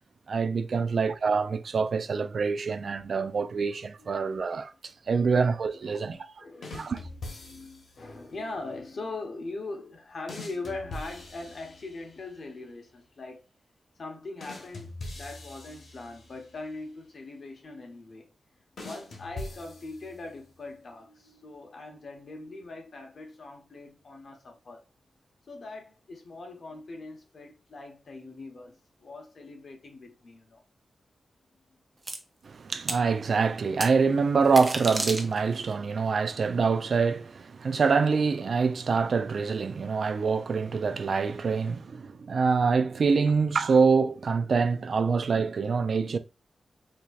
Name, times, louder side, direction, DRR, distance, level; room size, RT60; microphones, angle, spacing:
voice 1, 0.3-4.7 5.1-6.4 6.7-7.0 32.4-46.2, right 5 dB, 60° right, 0.3 m, -25 dB
voice 2, 2.9-3.2 4.0-4.3 5.8-13.4 14.0-18.3 18.8-24.8 25.5-30.6, left 3 dB, 55° left, 1.1 m, -41 dB
sound 1, 6.6-8.0 10.3-12.2 14.4-16.5 18.8-20.4, left 2 dB, 85° left, 1.1 m, -42 dB
sound 2, 32.1-32.2 32.9-33.0 33.8-33.9 34.4-35.6, right 2 dB, 25° right, 0.6 m, -32 dB
4.5 x 2.7 x 2.4 m
wide cardioid pair, 115°, 0 cm